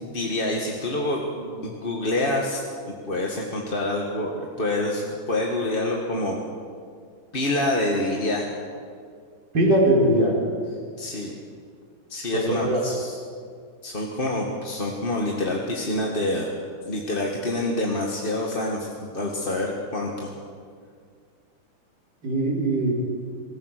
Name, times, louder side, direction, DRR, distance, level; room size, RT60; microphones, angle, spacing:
voice 1, 0.0-2.6 3.1-6.4 7.3-8.5 11.0-11.3 12.1-13.2 13.8-16.5 16.9-20.3, left 1 dB, 25° left, -1 dB, 1.7 m, -27 dB
voice 2, 9.5-10.3 12.3-12.8 22.2-23.0, right 1 dB, 50° right, -3 dB, 5.2 m, -20 dB
25.0 x 16.0 x 6.7 m, 2.1 s
omnidirectional pair, 2.4 m